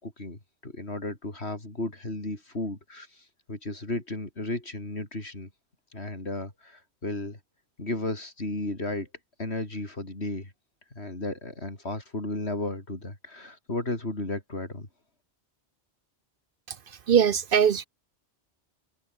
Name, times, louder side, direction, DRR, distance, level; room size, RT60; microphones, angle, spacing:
voice 1, 0.0-5.5 5.9-7.4 7.8-9.1 9.4-10.5 10.9-14.9, left 2 dB, 70° left, 4.9 m, -34 dB
voice 2, 17.1-17.8, right 8 dB, 60° right, 0.8 m, -21 dB
open air
omnidirectional pair, 1.1 m